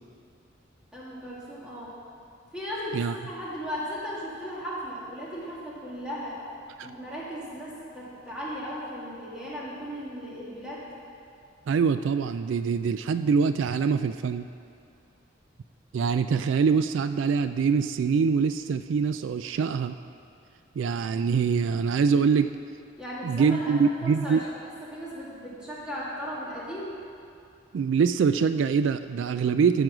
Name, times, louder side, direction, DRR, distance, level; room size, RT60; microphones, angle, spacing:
voice 1, 0.9-2.0 2.5-6.4 6.8-10.9 23.0-23.8 24.0-24.5 24.9-27.0, equal, 5° right, -8 dB, 2.3 m, -36 dB
voice 2, 11.7-14.5 15.9-20.0 20.8-22.5 23.2-24.4 27.7-29.8, right 5 dB, 75° right, 11 dB, 0.3 m, -24 dB
14.0 x 6.3 x 6.0 m, 2.6 s
head